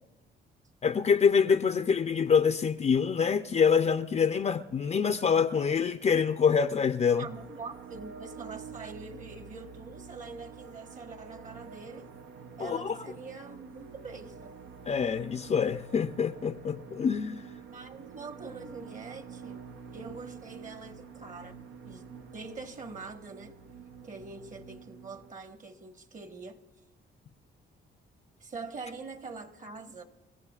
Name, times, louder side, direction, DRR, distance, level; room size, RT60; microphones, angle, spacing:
voice 1, 0.8-7.3 12.6-13.0 14.9-17.4, left 6 dB, 35° left, 0.5 m, -25 dB
voice 2, 7.1-12.1 12.6-14.5 17.7-19.6 19.9-22.0 22.3-23.6 24.0-26.6 28.4-30.0, right 4 dB, 40° right, 1.3 m, -44 dB
sound 1, 7.3-25.3, right 6 dB, 75° right, 0.8 m, -48 dB
28.5 x 15.0 x 2.4 m
cardioid pair, 90°, 20 cm